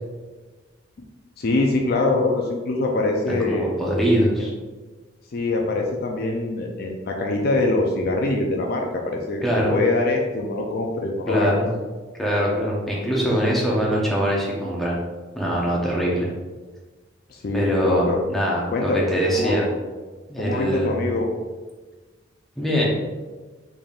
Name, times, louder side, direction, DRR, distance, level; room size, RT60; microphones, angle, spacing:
voice 1, 1.4-3.7 5.3-9.4 9.7-11.6 17.3-18.2 18.7-19.1 19.3-19.5 20.4-21.3, left 2 dB, 50° left, 1 dB, 0.4 m, -23 dB
voice 2, 3.3-4.5 9.4-9.8 11.3-11.7 12.2-15.0 15.4-16.3 17.5-19.7 20.3-21.1 22.6-22.9, equal, ahead, -4 dB, 0.7 m, -23 dB
4.0 x 3.4 x 2.4 m, 1.3 s
head